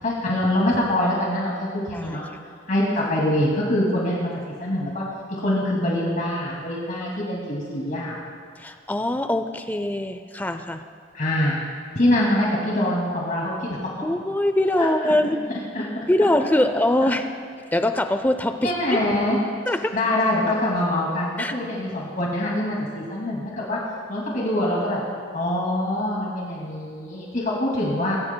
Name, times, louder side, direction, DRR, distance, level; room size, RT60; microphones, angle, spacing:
voice 1, 0.0-2.3 2.7-5.0 5.3-8.2 11.1-11.6 12.0-13.8 14.8-15.1 15.7-15.8 18.6-19.4 19.9-23.8 24.1-25.0 25.3-28.2, left 1 dB, 45° left, -4 dB, 2.3 m, -24 dB
voice 2, 8.6-10.8 14.0-15.5 16.1-17.3 17.7-18.7 19.7-20.0 21.4-21.6, left 1 dB, 10° left, 8 dB, 0.5 m, -22 dB
20.5 x 17.5 x 2.2 m, 2.2 s
head